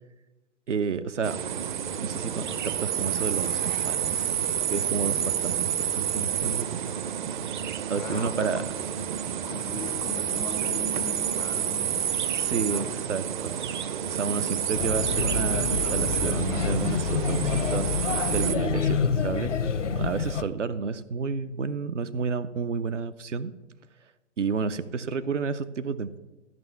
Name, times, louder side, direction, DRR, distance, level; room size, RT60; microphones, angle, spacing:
voice 1, 0.7-1.4 2.0-4.4 4.7-5.7 6.0-6.8 7.9-8.7 12.3-13.5 14.1-17.9 18.3-19.5 20.0-23.5 24.4-26.2, right 5 dB, 75° right, 10 dB, 0.7 m, -30 dB
sound 1, 1.2-18.5, right 9 dB, 40° right, 0.7 m, -29 dB
voice 2, 8.0-8.9 9.5-13.0 14.4-14.6, left 4 dB, 10° left, 6 dB, 0.4 m, -39 dB
Male speech man speaking / Child speech kid speaking / Chatter, 14.7-20.4, left 5 dB, 80° left, 0.9 m, -27 dB
14.0 x 5.4 x 7.0 m, 1.1 s
figure-of-eight pair, 125°, 36 cm